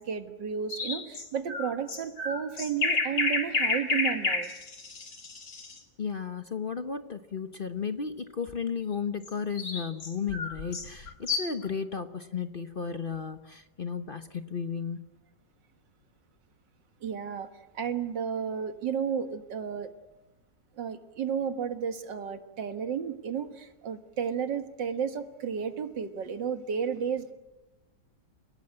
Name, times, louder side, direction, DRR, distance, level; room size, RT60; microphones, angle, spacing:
voice 1, 0.0-4.5 17.0-19.9 20.8-27.3, right 7 dB, 85° right, 8 dB, 2.2 m, -32 dB
sound 1, 0.7-5.8 9.2-11.7, left 3 dB, 75° left, 3.3 m, -30 dB
voice 2, 6.0-15.1, left 6 dB, 40° left, 9 dB, 0.9 m, -34 dB
29.5 x 17.0 x 8.9 m, 1.1 s
omnidirectional pair, 1.9 m